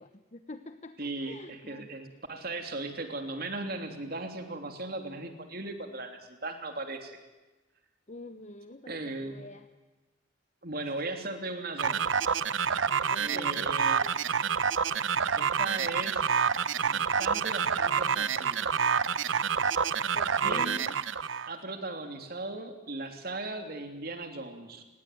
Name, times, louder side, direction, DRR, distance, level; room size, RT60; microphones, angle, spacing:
voice 1, 0.0-1.9 8.1-9.6 13.1-13.8 20.1-20.9, left 2 dB, 40° left, 9 dB, 1.1 m, -45 dB
voice 2, 1.0-7.2 8.9-9.5 10.6-12.0 13.2-14.0 15.3-16.3 16.8-18.6 20.4-20.8 21.5-24.8, right 2 dB, 55° right, 5 dB, 3.1 m, -37 dB
sound 1, 11.8-21.5, right 6 dB, 90° right, 0.9 m, -28 dB
29.5 x 20.0 x 9.3 m, 1.2 s
head